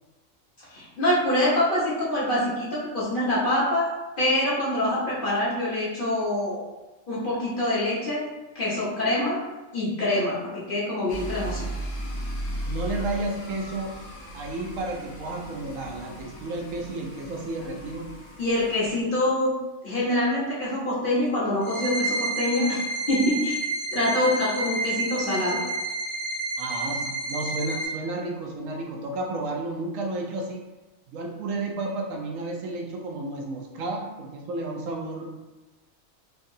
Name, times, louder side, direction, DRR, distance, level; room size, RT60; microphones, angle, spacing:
voice 1, 0.7-3.9 4.2-6.6 7.1-8.2 8.5-9.4 9.7-11.6 18.4-19.5 19.8-22.8 23.1-23.6 23.9-25.6, left 1 dB, 40° left, -7 dB, 1.1 m, -25 dB
sound 1, 11.1-19.0, equal, 65° left, 1.2 m, -36 dB
voice 2, 12.7-14.0 14.3-18.1 26.6-30.6 31.1-35.4, right 2 dB, 75° right, 0 dB, 1.0 m, -32 dB
sound 2, 21.6-27.9, right 2 dB, 35° right, 0.8 m, -30 dB
4.6 x 2.3 x 2.6 m, 1.1 s
omnidirectional pair, 1.4 m